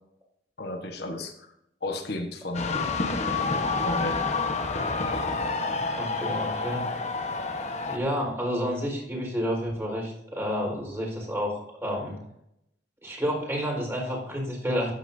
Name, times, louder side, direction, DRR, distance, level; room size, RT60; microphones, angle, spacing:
voice 1, 0.6-1.5 1.8-2.9 3.4-4.2, left 1 dB, 65° left, 4 dB, 1.3 m, -34 dB
sound 1, 2.5-8.0, left 3 dB, 40° left, 1.2 m, -28 dB
voice 2, 6.0-6.9 7.9-12.2 13.0-14.9, equal, 15° right, -1 dB, 4.5 m, -30 dB
13.5 x 9.9 x 2.7 m, 0.80 s
head